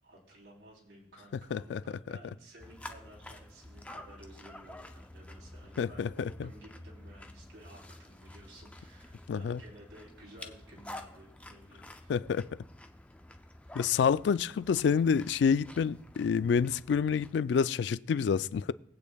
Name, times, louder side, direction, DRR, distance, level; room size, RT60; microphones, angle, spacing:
voice 1, 0.0-12.1, right 1 dB, 90° right, 3.4 m, -54 dB
voice 2, 1.5-1.8 5.8-6.1 6.4-6.5 9.3-9.6 12.1-12.5 13.7-18.7, left 6 dB, 80° left, 0.3 m, -28 dB
sound 1, 2.6-17.3, left 1 dB, 5° left, 0.4 m, -50 dB
22.0 x 8.4 x 2.3 m
head